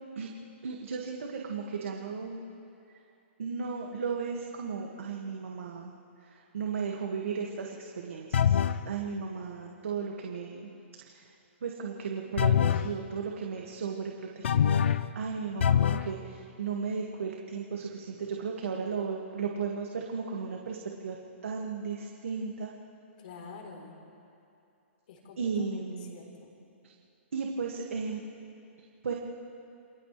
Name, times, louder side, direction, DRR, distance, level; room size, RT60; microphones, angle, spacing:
voice 1, 0.6-2.4 3.4-5.9 6.3-10.7 11.1-11.3 11.6-20.8 21.0-21.2 21.4-22.7 25.4-26.2 27.3-28.2 29.0-29.1, right 5 dB, 80° right, 0 dB, 2.1 m, -35 dB
sound 1, 8.3-8.9 12.4-12.9 14.4-15.1 15.6-16.1, left 8 dB, 65° left, 0.7 m, -24 dB
voice 2, 23.2-23.9 25.1-26.6, left 4 dB, 40° left, 0 dB, 4.1 m, -48 dB
29.0 x 28.0 x 3.4 m, 2.6 s
hypercardioid pair, 175°, 7 cm